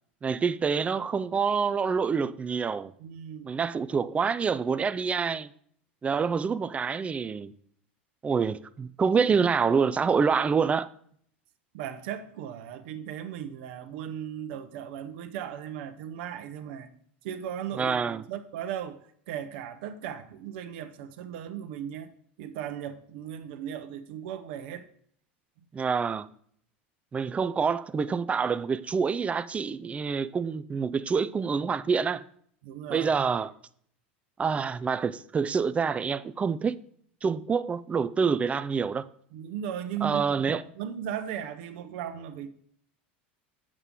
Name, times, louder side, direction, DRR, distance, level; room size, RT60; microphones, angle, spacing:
voice 1, 0.2-2.9 3.4-5.5 6.0-7.5 8.2-10.9 17.8-18.2 25.7-26.3 27.1-32.2 32.9-33.5 34.4-36.8 37.2-39.1 40.0-40.6, right 5 dB, 20° right, 0.4 m, -27 dB
voice 2, 3.0-3.5 11.7-16.9 17.2-22.1 22.4-24.9 32.6-33.2 39.3-42.5, right 9 dB, 65° right, 0.8 m, -37 dB
8.0 x 7.4 x 3.7 m
hypercardioid pair, 95°, 6 cm